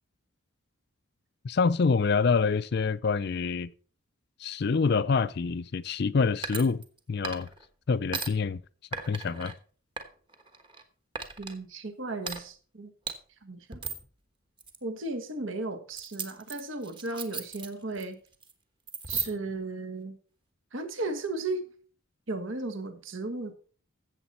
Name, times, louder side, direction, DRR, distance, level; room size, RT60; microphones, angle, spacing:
voice 1, 1.4-3.7 4.4-6.8 7.1-7.5 7.9-8.6 9.1-9.5, left 5 dB, 50° left, 0.4 m, -26 dB
sound 1, 6.4-7.0 7.2-7.6 8.1-8.3 8.9-9.5 10.0-10.8 11.1-11.5 12.2-12.4 13.1-13.2 13.7-14.1 14.6-14.8 15.9-18.0 18.3-18.5 18.9-19.5, right 4 dB, 25° right, 1.2 m, -36 dB
voice 2, 11.4-12.9 13.4-13.8 14.8-18.2 19.1-20.2 20.7-21.6 22.3-23.6, right 2 dB, 65° right, 1.4 m, -35 dB
15.0 x 7.2 x 4.3 m
head